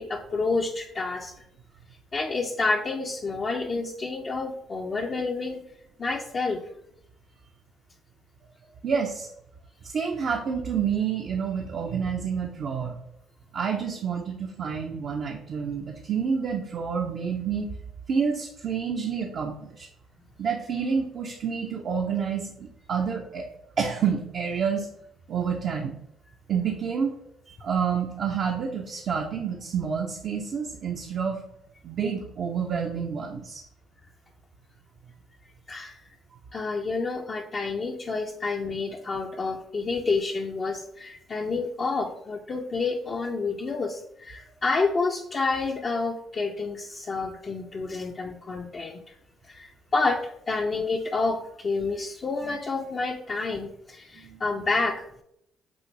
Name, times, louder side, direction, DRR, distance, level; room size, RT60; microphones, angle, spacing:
voice 1, 0.0-1.4 2.1-5.6 6.0-6.6 35.7-36.1 36.5-49.2 49.4-55.2, left 3 dB, 45° left, 0 dB, 0.5 m, -29 dB
voice 2, 8.8-9.3 9.8-13.0 13.5-17.7 18.1-19.9 20.4-23.5 23.8-24.9 25.3-25.9 26.5-27.1 27.5-31.4 31.8-33.6 52.5-52.6 54.2-54.4, right 6 dB, 60° right, 1 dB, 0.6 m, -28 dB
6.1 x 2.5 x 3.1 m, 0.76 s
supercardioid pair, 60°, 0 cm